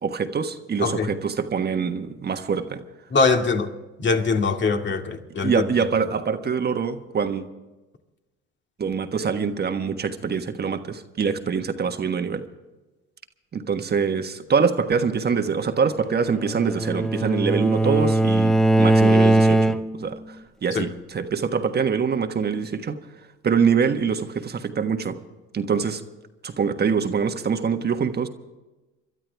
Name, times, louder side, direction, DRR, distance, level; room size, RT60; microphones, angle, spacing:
voice 1, 0.0-2.8 5.4-7.4 8.8-12.4 13.5-20.4 20.6-22.9 23.4-25.2 25.5-26.0 26.4-28.3, right 6 dB, 35° right, 1.4 m, -24 dB
voice 2, 3.1-3.7 4.0-5.7 20.7-20.9, left 4 dB, 40° left, 2.1 m, -22 dB
Bowed string instrument, 16.1-20.1, right 1 dB, ahead, 0.8 m, -20 dB
27.5 x 12.5 x 3.5 m
supercardioid pair, 80°, 29 cm